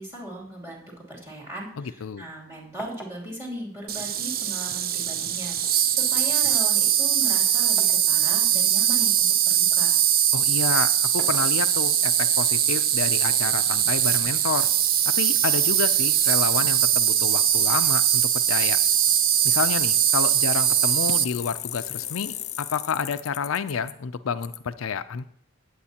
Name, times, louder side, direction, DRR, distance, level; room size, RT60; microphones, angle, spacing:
voice 1, 0.0-10.0, equal, 15° right, -4 dB, 2.9 m, -38 dB
sound 1, 1.5-2.4 2.8-4.7 5.6-8.1 8.7-9.9 10.9-12.1 13.2-14.3, right 1 dB, 5° left, 1.2 m, -46 dB
voice 2, 1.8-2.3 10.3-14.7 15.1-18.8 19.4-25.3, left 6 dB, 85° left, 11 dB, 0.5 m, -29 dB
Insect, 3.9-21.2, right 10 dB, 45° right, 0.5 m, -21 dB
Bicycle, 7.3-7.4 8.4-8.5 8.8-8.9 9.2-9.3 9.5-9.6 9.8-12.6 13.0-13.1 15.1-15.2 15.5-23.9 24.4-24.6, left 12 dB, 35° left, 0.5 m, -37 dB
18.0 x 8.0 x 2.9 m, 0.68 s
head